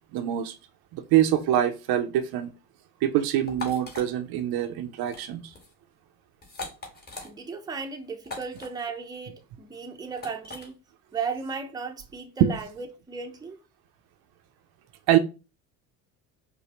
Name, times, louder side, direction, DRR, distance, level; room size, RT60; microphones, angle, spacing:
voice 1, 0.1-0.5 0.9-2.5 3.0-5.4 12.4-12.5 15.1-15.2, right 11 dB, 55° right, 0.6 m, -24 dB
sound 1, 3.5-4.0 5.0-5.2 5.5-5.7 6.4-7.3 8.2-8.7 10.2-10.7, left 3 dB, 20° left, 1.4 m, -39 dB
voice 2, 7.2-10.8 11.1-13.6, right 5 dB, 10° right, 0.6 m, -35 dB
5.0 x 2.1 x 2.9 m
hypercardioid pair, 75°, 44 cm